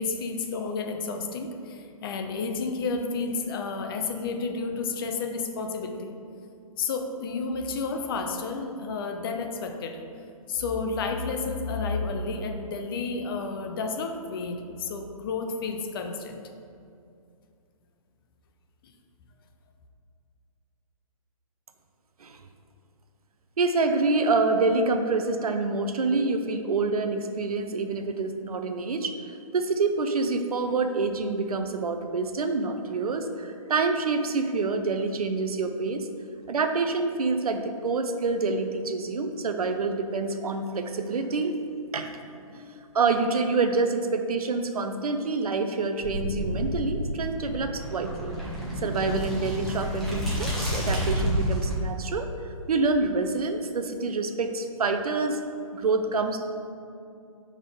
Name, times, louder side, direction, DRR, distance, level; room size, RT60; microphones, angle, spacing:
voice 1, 0.0-6.1 6.8-10.0 10.5-16.4 18.8-18.9 42.5-42.9, left 4 dB, 40° left, 5 dB, 0.5 m, -31 dB
voice 2, 23.6-29.1 29.5-36.1 36.5-41.6 41.9-42.2 42.5-42.6 42.9-48.4 48.8-52.3 52.7-55.4 55.7-56.4, right 3 dB, 90° right, 7 dB, 0.6 m, -27 dB
sound 1, 46.0-51.7, equal, ahead, 0.9 m, -30 dB
5.0 x 3.6 x 5.4 m, 2.5 s
hypercardioid pair, 150°, 18 cm